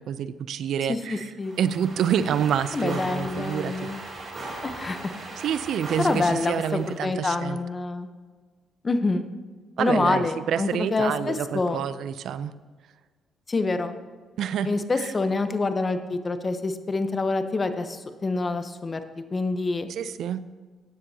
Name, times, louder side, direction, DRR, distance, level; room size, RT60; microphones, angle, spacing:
voice 1, 0.0-1.3 1.6-3.9 5.4-7.6 9.8-12.5 14.4-15.1 19.9-20.4, right 8 dB, 75° right, 14 dB, 0.5 m, -28 dB
voice 2, 0.9-1.5 2.7-4.0 4.6-5.0 6.0-8.1 8.8-9.2 9.8-11.8 13.5-14.0 14.6-19.9, left 3 dB, 30° left, 9 dB, 0.9 m, -26 dB
sound 1, 1.4-7.1, right 2 dB, 40° right, 3.2 m, -39 dB
14.5 x 10.0 x 2.8 m, 1.5 s
cardioid pair, 90°, 0 cm